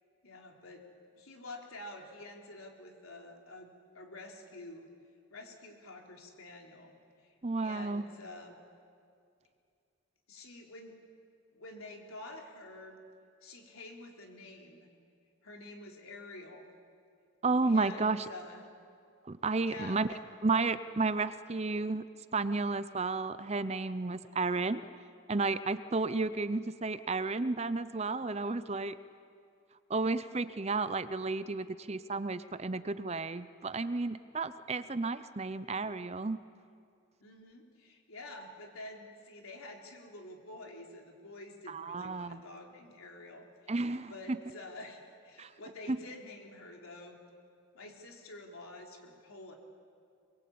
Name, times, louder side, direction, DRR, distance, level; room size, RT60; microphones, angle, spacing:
voice 1, 0.2-0.8 1.2-4.9 5.3-8.6 10.3-11.0 11.5-13.0 13.4-14.9 15.4-16.7 17.6-18.6 19.6-20.2 37.2-43.7 44.1-47.2 47.7-49.6, left 2 dB, 85° left, 1 dB, 3.6 m, -48 dB
voice 2, 7.4-8.0 17.4-18.3 19.2-20.1 20.4-22.0 22.3-24.9 25.3-28.9 29.9-36.4 41.7-42.4 43.7-44.4 45.4-45.5 45.9-46.0, right 3 dB, 30° right, 13 dB, 0.6 m, -32 dB
23.0 x 22.5 x 8.6 m, 2.4 s
head